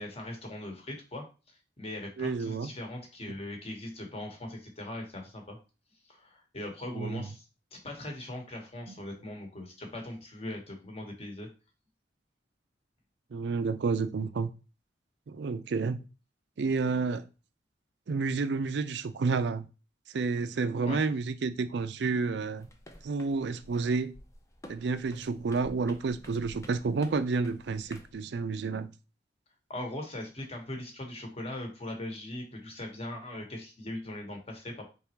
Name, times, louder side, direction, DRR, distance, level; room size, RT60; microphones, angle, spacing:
voice 1, 0.0-5.6 6.0-7.4 7.7-11.5 20.8-21.0 29.7-34.9, left 1 dB, 35° left, 1.1 m, -40 dB
voice 2, 2.2-2.7 6.9-7.3 13.3-14.5 15.3-16.0 16.6-17.2 18.1-19.7 20.1-22.7 23.0-24.1 24.7-28.9, right 4 dB, 65° right, 0.4 m, -30 dB
sound 1, 22.6-28.1, left 1 dB, 15° left, 0.5 m, -52 dB
4.2 x 3.6 x 2.9 m
head